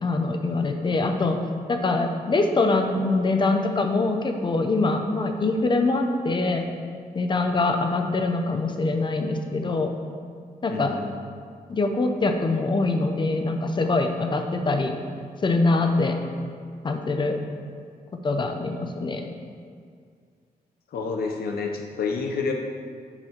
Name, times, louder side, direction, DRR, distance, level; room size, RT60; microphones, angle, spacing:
voice 1, 0.0-1.4 1.7-6.7 7.1-9.9 10.6-11.0 11.7-14.9 15.4-16.2 16.8-17.4 18.1-19.3, left 3 dB, 30° left, 5 dB, 0.5 m, -24 dB
voice 2, 10.7-11.1 20.9-22.5, left 4 dB, 75° left, 3 dB, 0.6 m, -29 dB
8.7 x 4.5 x 4.5 m, 2.1 s
wide cardioid pair, 175°, 16 cm